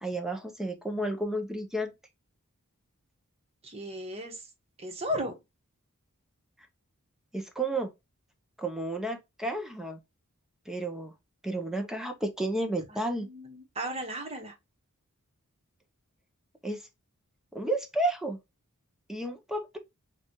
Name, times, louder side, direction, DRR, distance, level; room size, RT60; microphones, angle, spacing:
voice 1, 0.0-1.9 7.3-7.9 8.6-10.0 10.7-11.1 11.4-13.3 16.6-16.8 17.5-18.4 19.1-19.8, right 1 dB, ahead, 0.6 m, -32 dB
voice 2, 3.6-4.5 4.8-5.3 12.9-14.5, equal, 25° right, 1.1 m, -35 dB
6.6 x 2.4 x 2.9 m
head